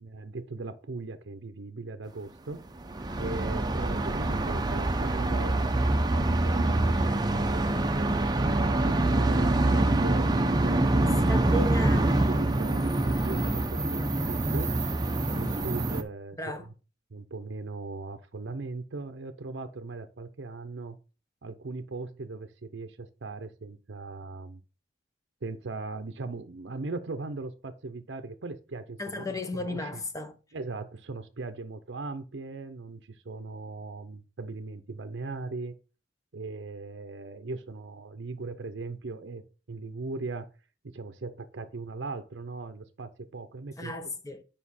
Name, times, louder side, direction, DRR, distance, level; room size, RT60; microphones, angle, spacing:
voice 1, 0.0-2.6 3.2-11.3 11.6-11.8 12.0-14.7 15.3-16.4 17.1-21.0 21.4-24.6 25.4-30.0 30.5-35.7 36.3-40.5 40.8-44.1, right 3 dB, 75° right, 0.6 m, -39 dB
sound 1, 2.8-16.0, right 2 dB, 20° right, 0.6 m, -25 dB
voice 2, 11.3-12.1 16.4-16.7 29.0-30.3 43.8-44.4, left 1 dB, 20° left, 0.6 m, -35 dB
7.3 x 5.3 x 4.2 m
head